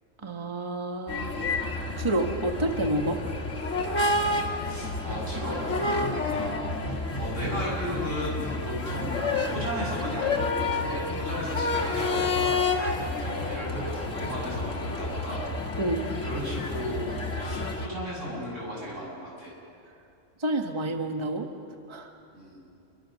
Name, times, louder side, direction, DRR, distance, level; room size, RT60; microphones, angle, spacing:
voice 1, 0.2-1.3 2.0-3.2 15.8-16.0 20.4-21.5 21.9-22.1, right 1 dB, 25° right, 4 dB, 1.4 m, -28 dB
sound 1, 1.1-17.9, left 3 dB, 90° left, 2.4 m, -29 dB
voice 2, 4.7-12.9 13.2-15.5 16.2-19.5 22.3-22.6, equal, 90° right, -4 dB, 8.1 m, -35 dB
27.0 x 24.0 x 6.5 m, 2.6 s
omnidirectional pair, 1.3 m